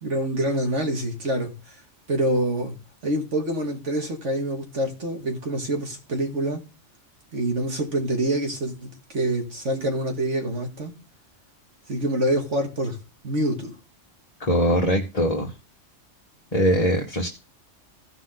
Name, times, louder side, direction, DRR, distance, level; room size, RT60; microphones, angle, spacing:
voice 1, 0.0-1.6 2.1-2.8 3.0-6.6 7.3-10.9 11.9-13.0 13.2-13.7, right 1 dB, 70° right, 2.6 m, -26 dB
voice 2, 14.4-15.5 16.5-17.3, equal, 30° left, 1.4 m, -22 dB
16.0 x 5.6 x 3.9 m
omnidirectional pair, 1.3 m